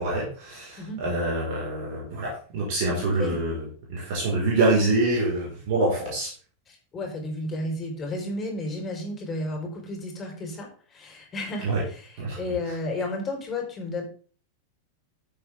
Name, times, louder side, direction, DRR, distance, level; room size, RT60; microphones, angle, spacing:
voice 1, 0.0-3.6 3.9-6.3 11.6-11.8 12.2-12.4, right 2 dB, 50° right, -4 dB, 5.0 m, -25 dB
voice 2, 2.9-3.4 6.7-14.0, left 2 dB, 25° left, 1 dB, 4.5 m, -33 dB
14.0 x 8.0 x 3.7 m, 0.42 s
figure-of-eight pair, 90°, 0 cm